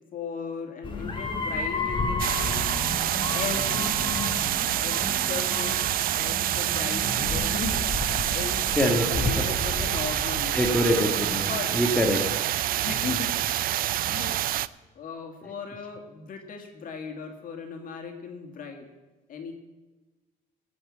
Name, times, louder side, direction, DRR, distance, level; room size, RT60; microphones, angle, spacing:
voice 1, 0.1-2.9 3.3-10.6 11.3-11.7 12.7-14.3 14.9-18.9 19.3-19.5, left 5 dB, 55° left, 3 dB, 2.3 m, -37 dB
sound 1, 0.8-11.4, left 3 dB, 30° left, 1.8 m, -33 dB
sound 2, 2.2-14.7, right 13 dB, 60° right, 0.4 m, -27 dB
voice 2, 10.5-12.2 13.0-13.1, left 1 dB, 5° left, 1 dB, 1.7 m, -25 dB
17.5 x 6.0 x 7.4 m, 1.1 s
cardioid pair, 110°, 17 cm